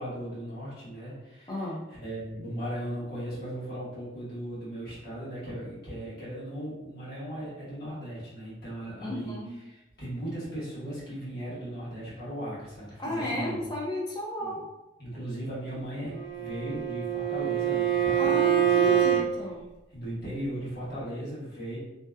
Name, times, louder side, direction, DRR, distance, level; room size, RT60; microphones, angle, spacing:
voice 1, 0.0-9.4 9.6-13.7 14.4-14.6 15.0-19.2 19.9-21.8, right 1 dB, 55° left, -9 dB, 1.2 m, -37 dB
voice 2, 1.5-1.8 9.0-9.6 13.0-14.7 18.2-19.6, left 1 dB, 25° left, -3 dB, 0.5 m, -33 dB
Bowed string instrument, 16.1-19.3, right 9 dB, 70° right, 0.4 m, -25 dB
2.6 x 2.1 x 2.3 m, 0.97 s
head